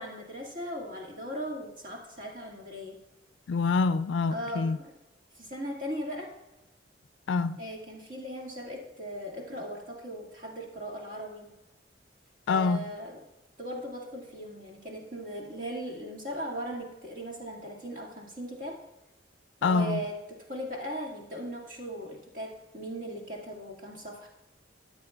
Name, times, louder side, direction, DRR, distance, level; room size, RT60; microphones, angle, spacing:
voice 1, 0.0-3.0 4.3-4.9 5.4-6.3 7.6-11.5 12.5-13.2 13.6-18.8 19.6-24.3, equal, 45° right, 2.0 m, -38 dB
voice 2, 3.5-4.8 7.3-7.6 12.5-12.8 19.6-20.0, left 4 dB, 75° left, 0.3 m, -26 dB
13.5 x 9.2 x 2.3 m
head